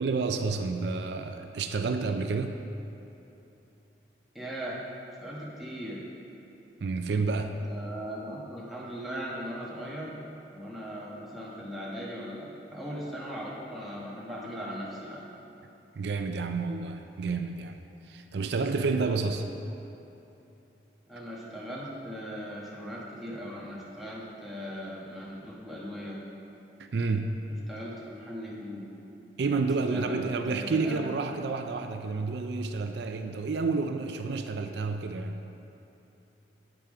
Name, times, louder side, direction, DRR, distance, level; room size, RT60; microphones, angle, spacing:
voice 1, 0.0-2.6 6.8-7.6 16.0-17.8 18.1-19.5 26.8-27.4 29.4-35.5, right 4 dB, 75° right, 6 dB, 0.4 m, -30 dB
voice 2, 4.3-4.8 5.2-6.0 7.5-10.2 10.5-15.2 21.1-26.2 27.5-28.9 29.6-31.1, equal, ahead, -6 dB, 1.2 m, -39 dB
9.0 x 5.8 x 4.9 m, 2.9 s
head